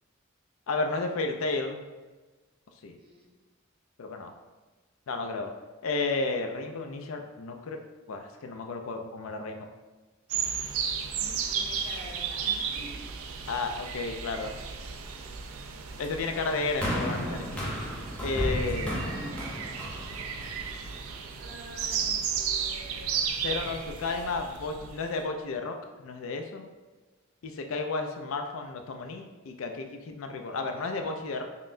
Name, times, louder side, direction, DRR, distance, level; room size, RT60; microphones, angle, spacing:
voice 1, 0.7-1.9 2.8-2.9 4.0-4.3 5.1-5.5 5.8-7.8 8.1-9.7 13.5-14.5 16.0-17.6 18.2-19.0 23.4-26.7 27.4-31.4, left 3 dB, 75° left, 4 dB, 0.4 m, -32 dB
voice 2, 3.0-3.4 11.1-13.0 14.8-15.0 18.6-19.6 20.5-20.9 21.4-23.2, right 1 dB, 50° right, -1 dB, 0.7 m, -47 dB
sound 1, 10.3-25.1, right 7 dB, 90° right, 0.4 m, -34 dB
sound 2, 16.8-21.2 22.0-22.1, equal, 5° left, 0.6 m, -33 dB
5.4 x 2.1 x 2.5 m, 1.3 s
head